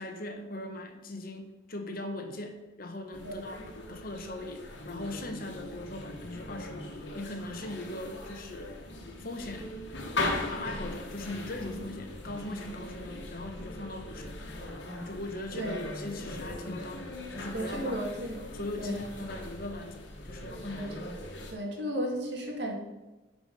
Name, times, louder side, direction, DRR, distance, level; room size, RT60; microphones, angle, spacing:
voice 1, 0.0-3.6 3.9-8.8 9.2-9.8 10.5-14.4 15.1-18.0 18.5-20.9, left 1 dB, 50° left, 5 dB, 1.1 m, -40 dB
sound 1, 3.1-21.5, left 2 dB, 65° left, 1.6 m, -39 dB
voice 2, 17.5-18.5 18.8-19.0 20.7-20.9 21.5-22.7, right 1 dB, 60° right, 0 dB, 2.2 m, -34 dB
10.5 x 5.0 x 5.3 m, 1.1 s
head